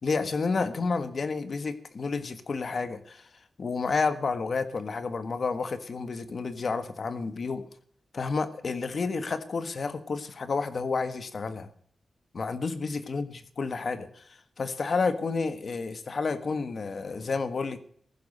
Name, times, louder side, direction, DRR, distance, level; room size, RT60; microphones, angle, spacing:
voice 1, 0.0-3.3 3.6-7.7 8.1-11.7 12.3-17.8, left 4 dB, 50° left, 12 dB, 1.4 m, -30 dB
15.5 x 11.5 x 6.6 m, 0.62 s
wide cardioid pair, 165°, 0 cm